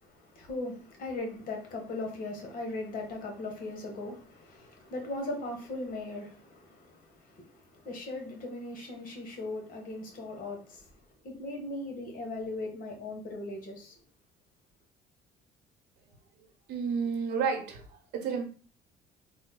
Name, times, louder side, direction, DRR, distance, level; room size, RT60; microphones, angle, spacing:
voice 1, 0.0-14.0, left 2 dB, 55° left, 1.4 m, -39 dB
voice 2, 16.7-18.4, right 6 dB, 75° right, 1.0 m, -31 dB
3.7 x 2.2 x 3.7 m
cardioid pair, 110°, 17 cm